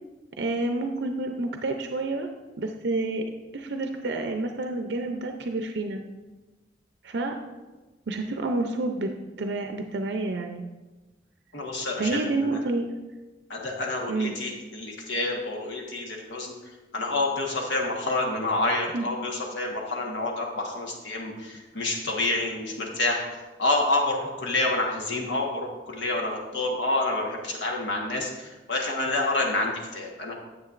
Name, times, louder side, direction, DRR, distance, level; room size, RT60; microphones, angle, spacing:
voice 1, 0.4-2.3 2.6-3.2 3.5-6.0 7.0-7.4 8.1-9.1 9.4-10.6 12.0-12.9 14.1-14.3 18.9-19.1, right 2 dB, 70° right, 4 dB, 0.5 m, -29 dB
voice 2, 11.5-12.5 13.5-16.5 16.9-30.3, left 2 dB, 90° left, 0 dB, 1.4 m, -28 dB
9.5 x 7.6 x 2.5 m, 1.2 s
head